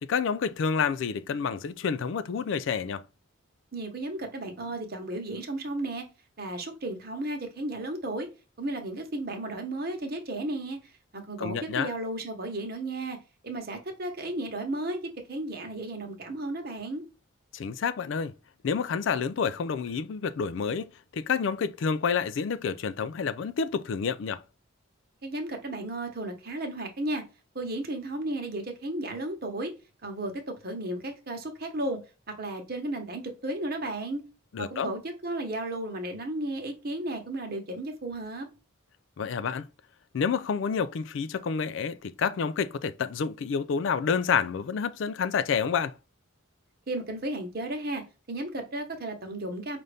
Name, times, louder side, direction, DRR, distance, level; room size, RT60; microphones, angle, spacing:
voice 1, 0.0-3.0 11.4-11.9 17.5-18.3 18.6-24.4 34.5-34.9 39.2-39.7 40.1-45.9, left 6 dB, 60° left, 0.3 m, -29 dB
voice 2, 3.7-6.1 6.4-8.3 8.6-13.2 13.4-17.0 25.2-27.2 27.5-29.7 30.0-32.0 32.4-34.2 34.6-38.5 46.9-48.0 48.3-49.8, right 1 dB, 45° right, 1.0 m, -34 dB
5.4 x 2.5 x 3.3 m
head